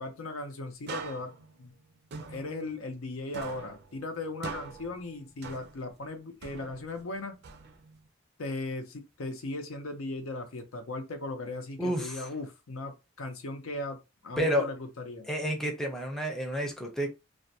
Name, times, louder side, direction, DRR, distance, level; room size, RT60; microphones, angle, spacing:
voice 1, 0.0-1.3 1.6-1.7 2.2-7.4 8.4-15.3, left 2 dB, 85° left, 0.6 m, -38 dB
sound 1, 0.9-3.1 3.3-6.0 6.4-8.1, right 4 dB, 50° right, 0.4 m, -43 dB
voice 2, 11.8-12.2 14.4-14.7 15.3-17.1, equal, ahead, 0.5 m, -30 dB
2.4 x 2.1 x 2.7 m
head